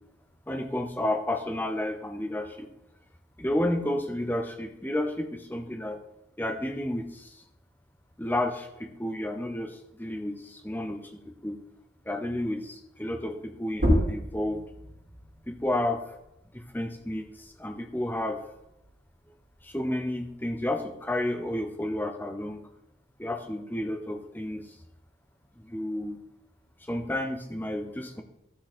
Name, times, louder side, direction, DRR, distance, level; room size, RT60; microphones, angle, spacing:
voice 1, 0.5-2.7 3.4-6.0 6.4-7.4 8.2-11.6 12.1-14.6 15.5-16.0 16.5-18.4 19.6-22.6 23.2-24.7 25.6-26.2 26.9-28.2, left 1 dB, 10° left, 5 dB, 0.8 m, -31 dB
sound 1, 13.7-18.9 19.3-21.1, equal, 45° right, 3.5 m, -32 dB
12.5 x 6.3 x 4.3 m, 0.84 s
head